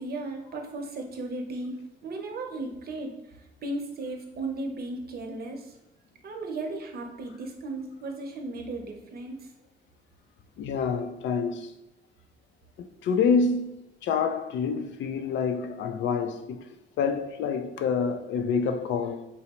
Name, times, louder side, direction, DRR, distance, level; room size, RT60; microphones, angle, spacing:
voice 1, 0.0-3.1 3.6-5.8 6.2-9.5, right 2 dB, 55° right, 0.7 m, -35 dB
voice 2, 10.6-11.7 12.8-13.7 14.0-16.6 17.0-19.3, left 5 dB, 85° left, 0.4 m, -27 dB
4.0 x 2.0 x 4.2 m
cardioid pair, 110°, 19 cm